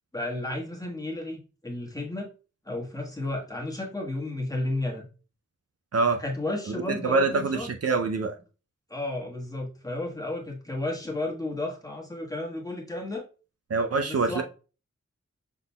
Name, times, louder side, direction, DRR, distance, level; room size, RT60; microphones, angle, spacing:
voice 1, 0.1-2.3 2.6-5.0 6.2-7.7 8.9-13.2 14.0-14.4, left 2 dB, 10° left, 1.4 m, -33 dB
voice 2, 5.9-6.2 6.7-8.3 13.7-14.4, right 3 dB, 55° right, 0.6 m, -25 dB
5.7 x 3.9 x 2.3 m
cardioid pair, 55°, 29 cm